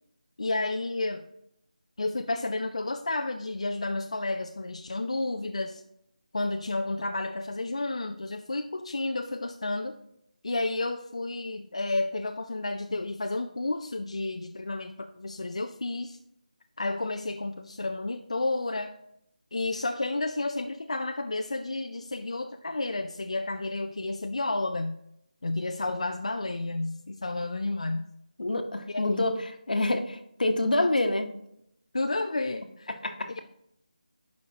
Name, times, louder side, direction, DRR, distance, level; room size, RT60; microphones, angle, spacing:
voice 1, 0.4-1.2 2.0-5.8 6.3-10.0 10.4-16.2 16.8-18.9 19.5-25.0 25.4-28.1 28.9-29.4 30.8-30.9 31.9-33.0, left 2 dB, 45° left, 6 dB, 0.4 m, -31 dB
voice 2, 28.4-29.3 29.7-31.3 32.9-33.3, left 2 dB, 75° left, 6 dB, 1.0 m, -26 dB
10.5 x 5.3 x 2.8 m, 0.77 s
figure-of-eight pair, 180°, 5 cm